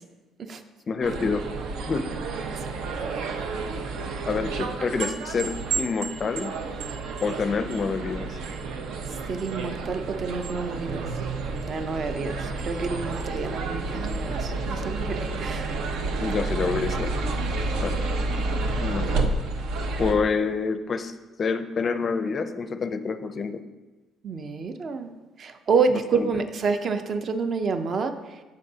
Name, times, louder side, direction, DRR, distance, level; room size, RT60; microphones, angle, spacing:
voice 1, 0.9-1.5 1.9-2.2 4.3-6.6 7.2-8.4 16.2-17.3 17.8-18.0 18.8-19.3 20.0-23.6 26.1-26.3, left 5 dB, 30° left, 10 dB, 0.5 m, -27 dB
sound 1, 1.0-20.1, right 3 dB, 70° right, 0.8 m, -30 dB
voice 2, 9.3-11.0 11.7-12.4 12.6-15.7 24.2-25.1 25.4-28.1, right 5 dB, 35° right, 8 dB, 0.6 m, -28 dB
14.5 x 5.3 x 2.8 m, 1.2 s
cardioid pair, 160°, 0 cm